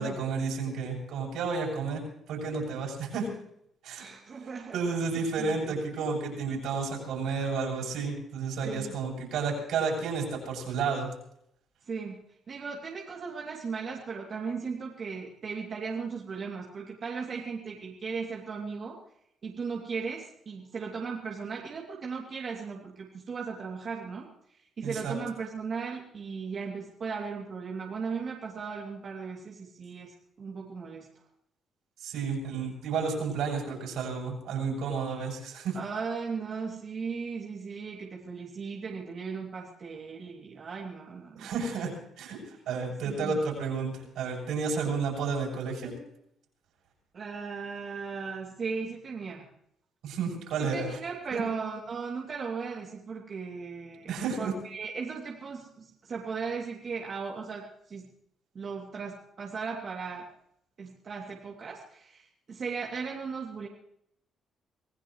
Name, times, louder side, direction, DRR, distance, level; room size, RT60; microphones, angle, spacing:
voice 1, 0.0-2.0 2.3-3.3 3.8-4.1 4.7-11.1 24.8-25.1 32.0-35.8 41.3-41.9 42.2-42.4 42.7-45.9 50.0-50.9 51.3-51.4 54.1-54.5, right 5 dB, 80° right, -1 dB, 7.5 m, -31 dB
voice 2, 4.0-5.0 5.4-5.8 8.6-8.9 11.9-12.2 12.5-19.0 19.4-31.1 35.7-41.5 43.0-43.4 47.1-49.5 50.6-58.1 58.5-60.3 60.8-63.7, right 5 dB, 50° right, -2 dB, 2.8 m, -37 dB
26.0 x 16.5 x 3.2 m, 0.72 s
cardioid pair, 90°, 0 cm